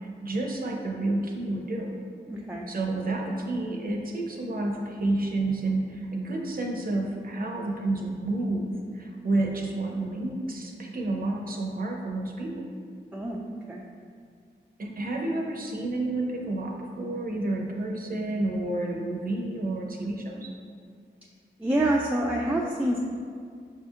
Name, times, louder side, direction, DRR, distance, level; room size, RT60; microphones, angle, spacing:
voice 1, 0.2-2.0 2.7-8.6 8.9-12.6 14.8-20.5, right 2 dB, 50° right, 0 dB, 0.6 m, -30 dB
voice 2, 2.3-2.6 13.1-13.4 13.7-13.8 21.6-23.0, right 1 dB, 10° right, -2 dB, 0.3 m, -26 dB
4.8 x 2.7 x 2.4 m, 2.2 s
cardioid pair, 40°, 19 cm